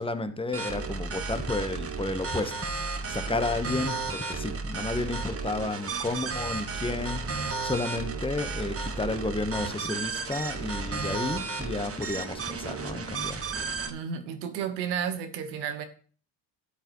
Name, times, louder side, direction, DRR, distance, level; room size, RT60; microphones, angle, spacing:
voice 1, 0.0-13.4, left 3 dB, 10° left, 1.1 m, -32 dB
sound 1, 0.5-13.9, right 4 dB, 30° right, 1.3 m, -33 dB
voice 2, 13.9-15.8, right 8 dB, 90° right, 1.3 m, -32 dB
13.0 x 8.0 x 3.1 m
hypercardioid pair, 70°, 49 cm